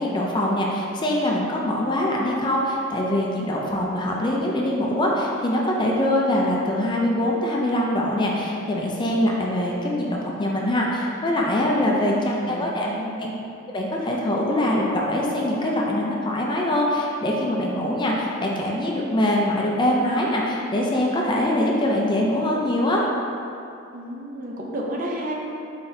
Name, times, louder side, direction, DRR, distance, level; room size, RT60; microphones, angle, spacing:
voice 1, 0.0-12.9 13.2-13.3 13.7-23.0, left 1 dB, 25° left, -2 dB, 0.4 m, -23 dB
voice 2, 11.8-13.2 23.9-25.3, equal, 45° right, -2 dB, 0.6 m, -32 dB
4.4 x 3.9 x 2.6 m, 2.7 s
head